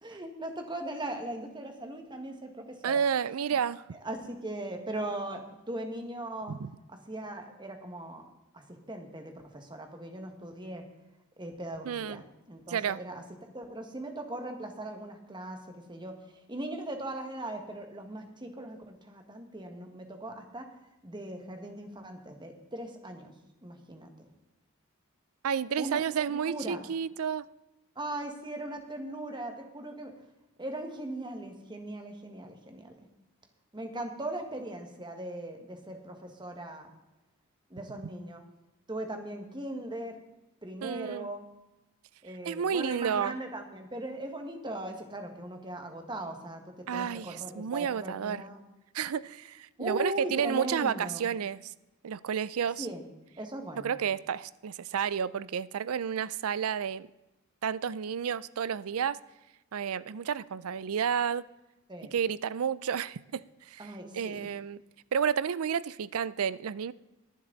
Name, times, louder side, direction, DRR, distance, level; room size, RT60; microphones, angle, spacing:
voice 1, 0.0-3.0 3.5-3.6 4.0-6.6 7.1-8.2 8.5-10.8 11.4-13.2 13.5-16.2 16.5-20.7 21.0-23.3 23.6-24.1 25.8-26.9 28.0-30.1 30.6-33.1 33.7-36.9 37.7-38.4 38.9-40.2 40.6-41.4 42.2-48.6 49.8-51.3 52.8-53.0 53.4-54.0 61.9-62.1 63.8-64.5, right 1 dB, 20° right, 1.7 m, -39 dB
voice 2, 2.8-3.8 6.5-6.7 11.9-12.2 12.7-13.0 25.4-27.5 40.8-41.3 42.4-43.4 46.9-48.4 48.9-51.7 52.0-52.9 53.8-57.1 57.6-59.2 59.7-61.5 62.1-63.4 63.7-64.8 65.1-66.9, right 7 dB, 80° right, 0.4 m, -31 dB
22.5 x 7.5 x 4.0 m
head